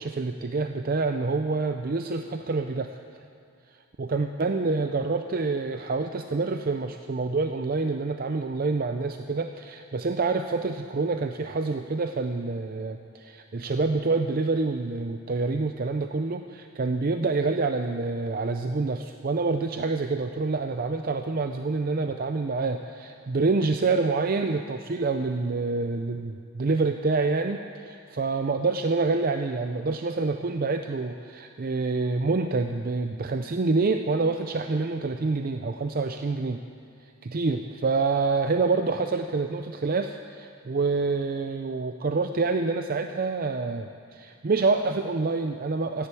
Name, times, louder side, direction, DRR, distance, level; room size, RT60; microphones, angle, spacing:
voice 1, 0.0-2.9 4.0-36.6 37.2-46.1, right 3 dB, 45° right, 7 dB, 0.5 m, -27 dB
15.0 x 10.0 x 8.4 m, 2.5 s
head